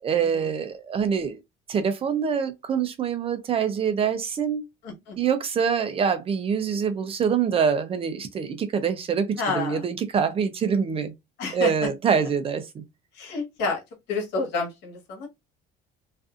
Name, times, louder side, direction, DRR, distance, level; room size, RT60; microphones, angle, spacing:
voice 1, 0.0-1.4 1.7-4.6 5.2-11.1 11.5-12.8, right 7 dB, 30° right, 0.5 m, -25 dB
voice 2, 4.8-5.2 9.4-9.8 11.4-11.7 13.1-13.8 14.1-15.3, left 3 dB, 80° left, 1.2 m, -29 dB
2.5 x 2.4 x 2.4 m
cardioid pair, 145°, 18 cm